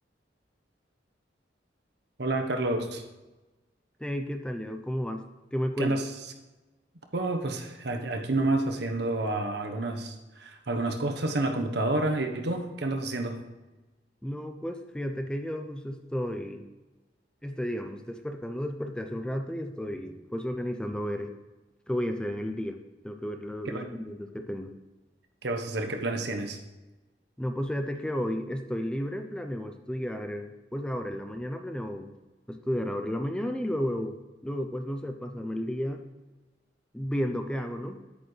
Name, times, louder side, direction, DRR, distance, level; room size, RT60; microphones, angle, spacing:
voice 1, 2.2-3.0 5.8-6.1 7.1-13.4 23.6-23.9 25.4-26.6, right 2 dB, 65° right, 4 dB, 1.1 m, -29 dB
voice 2, 4.0-5.9 14.2-16.6 17.4-21.3 21.9-22.8 23.0-24.7 27.4-32.1 32.5-36.1 36.9-38.0, equal, 5° left, 6 dB, 0.5 m, -33 dB
10.0 x 8.7 x 3.3 m, 1.1 s
head